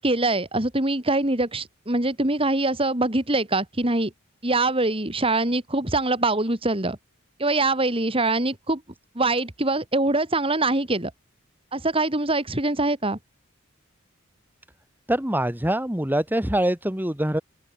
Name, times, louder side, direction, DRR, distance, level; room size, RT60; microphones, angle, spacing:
voice 1, 0.0-4.1 4.4-7.0 7.4-8.8 9.1-11.1 11.7-13.2, right 2 dB, 25° right, 2.8 m, -23 dB
voice 2, 15.1-17.4, right 1 dB, 10° right, 1.5 m, -24 dB
open air
head